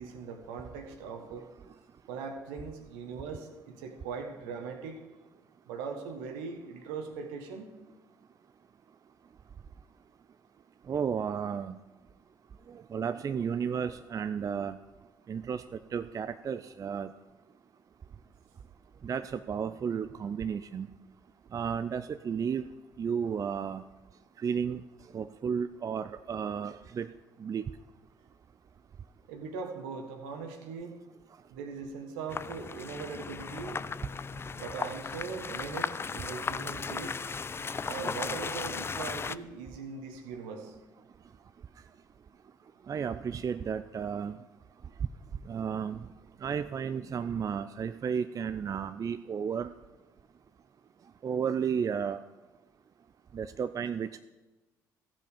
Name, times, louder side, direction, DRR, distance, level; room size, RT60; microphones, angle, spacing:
voice 1, 0.0-1.5 2.1-5.0 5.7-7.7 29.3-30.9 31.5-33.8 34.5-37.2 37.8-40.7, right 5 dB, 75° right, 5 dB, 1.5 m, -40 dB
voice 2, 10.9-11.8 12.9-14.8 15.3-15.6 15.9-17.1 19.0-20.9 21.5-22.6 23.0-23.8 24.4-24.8 25.1-27.1 27.4-27.6 42.9-44.4 45.5-46.0 46.4-49.7 51.2-52.2 53.3-54.2, right 7 dB, 35° right, 12 dB, 0.4 m, -33 dB
sound 1, 32.3-39.4, left 5 dB, 25° left, 0.4 m, -36 dB
14.5 x 7.5 x 5.0 m, 1.1 s
hypercardioid pair, 50°, 10 cm